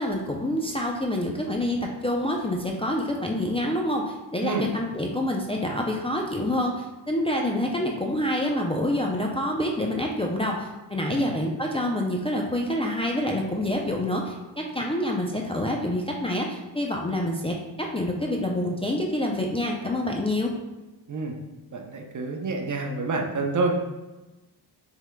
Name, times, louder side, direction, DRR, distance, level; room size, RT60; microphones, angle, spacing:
voice 1, 0.0-20.5, left 1 dB, 15° left, -1 dB, 0.4 m, -27 dB
voice 2, 21.7-23.8, right 3 dB, 45° right, 2 dB, 0.7 m, -28 dB
5.9 x 3.7 x 2.2 m, 1.1 s
cardioid pair, 90°, 42 cm